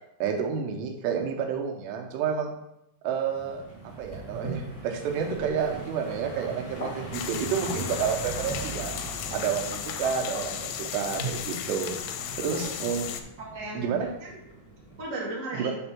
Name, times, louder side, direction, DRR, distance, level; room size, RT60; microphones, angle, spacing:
voice 1, 0.2-2.5 3.0-3.6 4.0-8.9 9.3-12.0 12.4-13.1 13.7-14.1 15.5-15.7, right 7 dB, 85° right, 2 dB, 3.0 m, -30 dB
sound 1, 3.3-15.1, right 1 dB, 65° left, 0.9 m, -41 dB
Toilet flush, 4.2-13.3, right 3 dB, 10° right, 1.6 m, -43 dB
sound 2, 7.1-13.2, left 9 dB, 85° left, 2.4 m, -35 dB
voice 2, 12.4-12.9 13.4-14.4 15.0-15.7, right 2 dB, 35° right, -5 dB, 1.2 m, -36 dB
7.3 x 3.5 x 5.9 m, 0.83 s
omnidirectional pair, 4.9 m